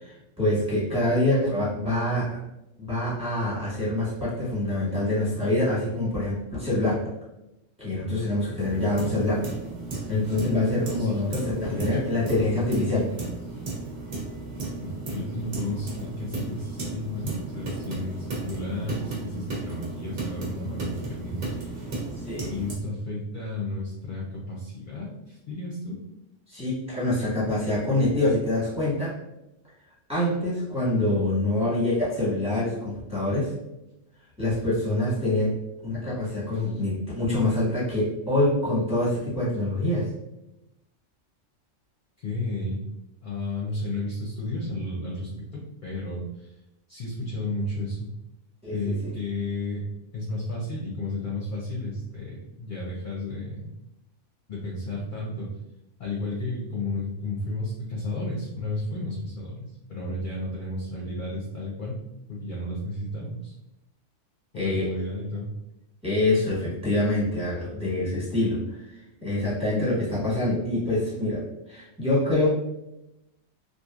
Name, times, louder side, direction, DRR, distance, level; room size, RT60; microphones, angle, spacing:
voice 1, 0.0-2.4 2.8-7.1 7.8-9.4 10.1-13.1 22.2-22.5 26.5-29.2 30.1-33.5 34.4-40.1 48.6-48.9 64.5-64.9 66.0-68.6 69.2-72.5, left 1 dB, 5° right, -9 dB, 1.2 m, -25 dB
sound 1, 8.6-22.7, right 3 dB, 65° right, 1.1 m, -35 dB
voice 2, 11.7-12.1 12.3-12.4 12.9-13.1 14.8-21.9 22.5-26.0 34.9-35.0 42.2-42.8 43.2-46.5 46.9-48.1 48.7-49.8 50.1-53.7 54.5-55.5 56.0-62.0 62.3-63.5 64.5-65.5, left 1 dB, 50° left, -5 dB, 0.7 m, -33 dB
3.0 x 2.5 x 2.4 m, 0.91 s
omnidirectional pair, 1.3 m